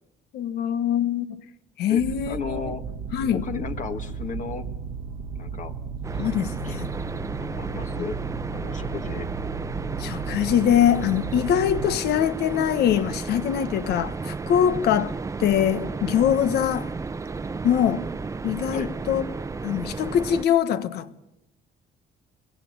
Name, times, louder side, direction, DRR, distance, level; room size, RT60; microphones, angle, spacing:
voice 1, 0.3-1.4 1.8-2.6 3.1-3.4 6.2-6.9 10.0-15.1 15.4-16.9 17.6-18.0 18.4-19.2 19.6-21.1, left 9 dB, 75° left, 1.4 m, -23 dB
sound 1, 2.0-11.9, right 5 dB, 70° right, 1.2 m, -35 dB
voice 2, 2.3-2.8 3.4-4.7 5.3-5.7 6.6-6.7 7.4-8.2 8.5-9.3 14.6-14.8 18.7-18.9, left 5 dB, 45° left, 1.6 m, -34 dB
sound 2, 6.0-20.4, right 4 dB, 20° right, 0.8 m, -33 dB
22.5 x 17.0 x 9.6 m
cardioid pair, 110°, 17 cm